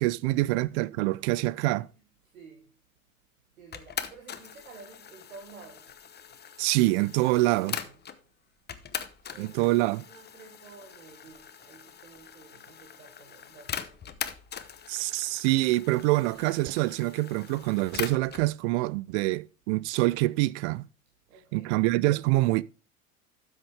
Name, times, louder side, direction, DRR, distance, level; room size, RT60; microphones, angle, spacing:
voice 1, 0.0-1.9 6.6-7.8 9.4-10.0 14.9-20.9 21.5-22.6, right 19 dB, 55° right, 0.5 m, -25 dB
voice 2, 2.2-2.8 3.6-6.4 7.4-8.0 8.8-14.2 21.3-21.8, right 4 dB, 80° right, 1.4 m, -52 dB
sound 1, 3.7-8.2 8.7-18.5, left 8 dB, 25° left, 0.9 m, -41 dB
12.5 x 6.3 x 3.4 m
hypercardioid pair, 70°, 41 cm